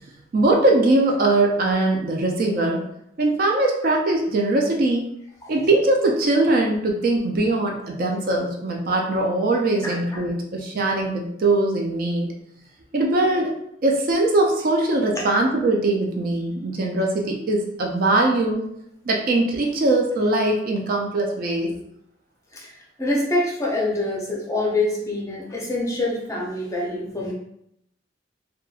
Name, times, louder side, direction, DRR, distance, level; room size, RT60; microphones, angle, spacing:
voice 1, 0.3-2.8 3.2-5.0 5.5-12.3 12.9-13.5 13.8-18.6 19.1-21.8, right 2 dB, 45° right, 1 dB, 0.4 m, -21 dB
voice 2, 9.8-10.2 15.2-15.3 22.5-27.3, left 2 dB, 15° left, -4 dB, 0.5 m, -26 dB
2.9 x 2.2 x 2.3 m, 0.74 s
head